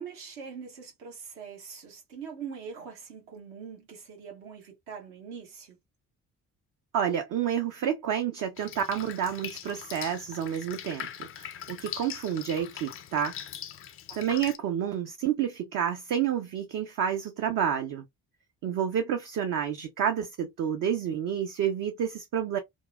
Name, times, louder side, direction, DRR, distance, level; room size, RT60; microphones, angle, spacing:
voice 1, 0.0-5.8 14.1-14.2, right 6 dB, 70° right, 1.3 m, -43 dB
voice 2, 6.9-11.1 11.4-13.3 14.1-18.0 18.6-22.6, right 9 dB, 45° right, 0.6 m, -29 dB
Drip, 8.6-14.6, left 10 dB, 30° left, 0.4 m, -41 dB
2.8 x 2.2 x 2.3 m
figure-of-eight pair, 45°, 46 cm